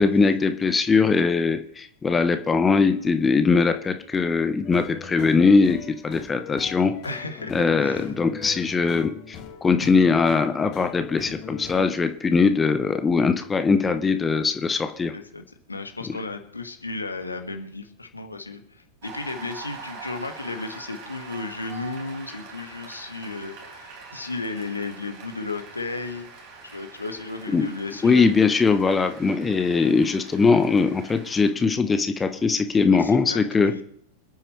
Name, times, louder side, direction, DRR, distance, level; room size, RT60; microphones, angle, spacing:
voice 1, 0.0-5.8 6.0-6.9 7.5-15.1 27.5-27.7 28.0-33.7, left 4 dB, 15° left, 8 dB, 1.0 m, -21 dB
sound 1, 4.6-11.8, left 8 dB, 40° left, 2.3 m, -40 dB
voice 2, 7.0-8.1 9.8-10.1 15.1-26.3 26.6-28.3 32.9-33.8, left 3 dB, 80° left, 6 dB, 1.6 m, -34 dB
Cheering / Applause, 19.0-31.5, right 5 dB, 45° right, 4.3 m, -43 dB
26.0 x 9.0 x 3.2 m, 0.64 s
figure-of-eight pair, 90°, 0 cm